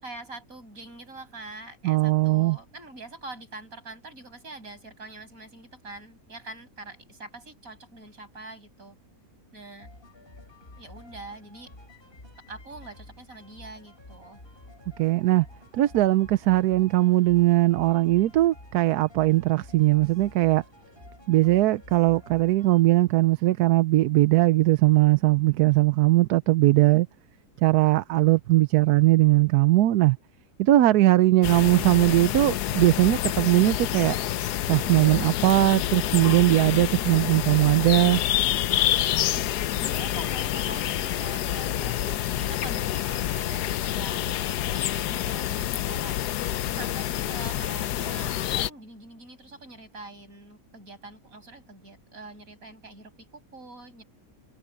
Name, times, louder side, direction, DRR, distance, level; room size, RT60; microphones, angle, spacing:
voice 1, 0.0-9.0 9.5-9.9 10.8-11.7 12.5-14.4 39.0-39.2 39.8-46.2 46.7-54.0, right 2 dB, 60° right, 6.8 m, -44 dB
voice 2, 1.8-2.6 15.0-15.5 15.7-20.6 21.3-27.1 27.6-30.2 30.6-34.2 34.7-38.2, right 16 dB, 80° right, 1.1 m, -20 dB
sound 1, 9.8-22.8, left 1 dB, 35° left, 4.5 m, -50 dB
sound 2, 31.4-48.7, left 12 dB, 85° left, 1.3 m, -27 dB
omnidirectional pair, 1.7 m